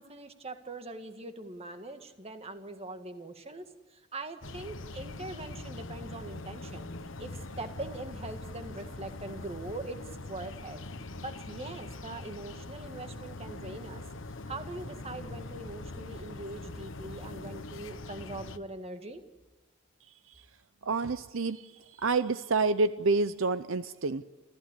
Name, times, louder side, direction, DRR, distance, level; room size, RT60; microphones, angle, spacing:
voice 1, 0.0-3.6 3.9-6.9 7.2-7.3 7.6-10.8 11.2-14.0 14.5-19.2, right 2 dB, 30° right, 7 dB, 1.8 m, -42 dB
sound 1, 4.4-18.6, left 2 dB, 65° left, 1.1 m, -42 dB
voice 2, 20.8-21.7 22.0-24.2, right 3 dB, 70° right, 13 dB, 0.7 m, -28 dB
28.0 x 15.0 x 9.8 m, 1.2 s
head